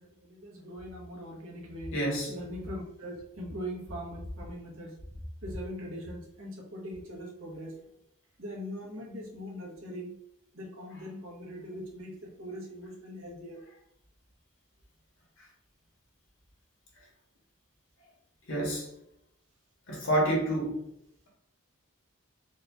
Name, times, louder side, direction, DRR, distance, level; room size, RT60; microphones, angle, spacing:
voice 1, 0.4-1.9 2.3-4.9 5.4-6.5 6.8-7.7 8.4-10.1 10.6-12.1 12.4-13.6, equal, 70° right, -3 dB, 1.4 m, -40 dB
voice 2, 1.9-2.3 10.9-11.0 18.5-18.9 19.9-20.8, right 1 dB, 60° left, -2 dB, 1.6 m, -28 dB
4.3 x 2.7 x 3.5 m, 0.79 s
head